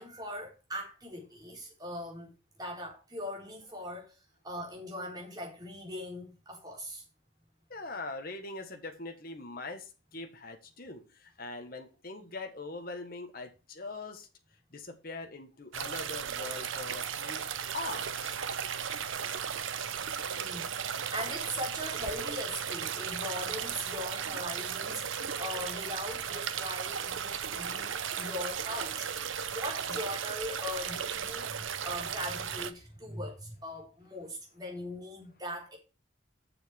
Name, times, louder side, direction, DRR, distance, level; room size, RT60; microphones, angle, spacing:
voice 1, 0.0-2.3 2.6-4.2 4.4-7.0 20.3-35.8, left 1 dB, 20° right, 3.8 m, -40 dB
voice 2, 7.7-14.3 14.7-18.4 19.9-20.0, left 3 dB, 50° left, 1.5 m, -42 dB
sound 1, 15.7-32.7, right 7 dB, 85° right, 0.8 m, -36 dB
7.4 x 6.8 x 6.0 m
head